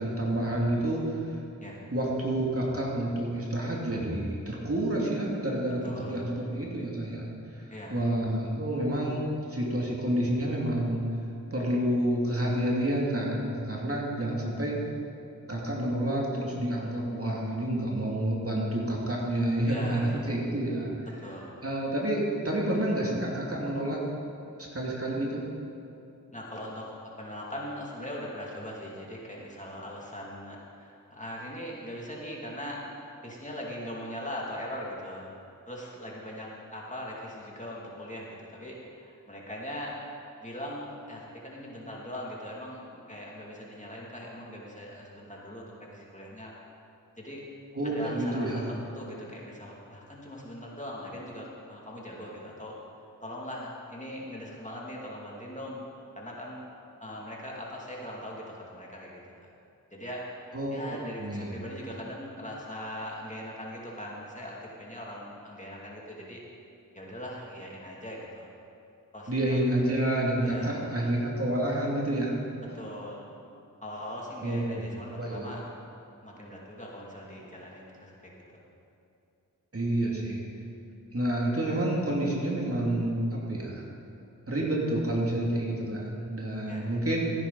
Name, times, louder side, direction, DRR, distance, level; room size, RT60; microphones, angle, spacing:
voice 1, 0.0-1.4 1.9-7.6 7.9-11.0 11.5-14.8 15.5-20.9 21.6-24.0 24.7-25.4 47.7-48.7 60.5-61.5 69.3-72.4 74.4-75.5 79.7-80.5 81.1-83.8 84.5-87.3, right 1 dB, 40° right, -3 dB, 2.6 m, -29 dB
voice 2, 5.8-6.3 7.7-8.0 19.6-20.3 21.0-21.5 26.3-32.8 33.2-35.3 35.7-40.0 40.4-46.5 47.2-47.4 47.8-52.8 53.2-55.8 56.2-56.6 57.0-59.2 59.9-66.4 66.9-68.5 69.1-69.6 70.4-70.8 72.6-73.2 73.8-75.7 76.2-78.3 86.7-86.9, equal, 20° left, -4 dB, 2.6 m, -40 dB
15.0 x 9.9 x 4.1 m, 2.7 s
cardioid pair, 45°, 36 cm